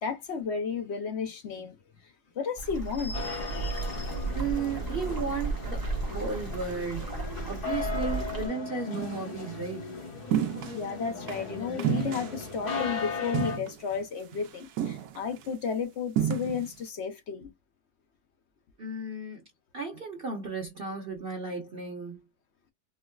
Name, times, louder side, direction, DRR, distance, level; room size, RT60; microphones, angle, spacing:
voice 1, 0.0-1.8 2.3-4.2 10.7-17.5, left 6 dB, 60° left, 0.7 m, -33 dB
sound 1, 2.6-8.5, right 3 dB, 15° right, 0.8 m, -34 dB
sound 2, 3.1-13.6, left 4 dB, 75° left, 1.9 m, -37 dB
voice 2, 4.3-7.1 7.4-9.9 18.8-19.4 19.7-22.2, right 4 dB, 45° right, 1.0 m, -34 dB
sound 3, 8.9-9.3 10.3-10.8 11.3-11.4 11.8-12.8 13.3-14.0 14.3-14.5 14.8-15.5 16.2-16.7, right 10 dB, 75° right, 1.1 m, -30 dB
4.5 x 2.0 x 2.3 m
omnidirectional pair, 1.7 m